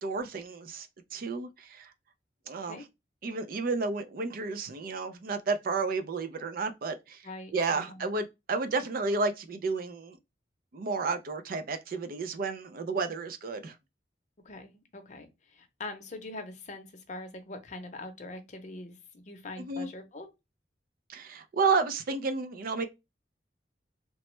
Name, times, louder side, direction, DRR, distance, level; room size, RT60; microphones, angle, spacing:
voice 1, 0.0-1.9 2.5-2.8 3.2-7.2 7.5-10.2 10.7-13.8 19.6-19.9 21.1-22.9, right 4 dB, 55° right, 0.4 m, -31 dB
voice 2, 7.2-8.2 14.4-20.3, left 2 dB, 45° left, 0.7 m, -43 dB
3.0 x 2.0 x 3.1 m
head